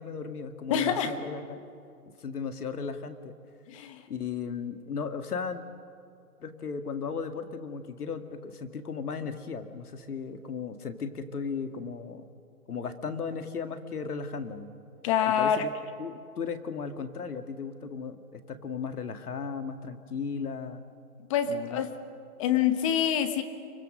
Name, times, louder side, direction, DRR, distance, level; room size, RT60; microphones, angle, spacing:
voice 1, 0.0-1.6 2.2-3.3 4.1-5.6 6.4-12.3 12.7-14.7 15.3-15.7 16.0-20.8 21.5-21.8, left 5 dB, 80° left, 8 dB, 2.1 m, -36 dB
voice 2, 0.7-1.1 3.7-4.0 15.0-15.6 21.3-21.9 22.4-23.4, left 9 dB, 20° left, 10 dB, 1.1 m, -26 dB
26.5 x 24.0 x 6.5 m, 2.4 s
hypercardioid pair, 155°, 45 cm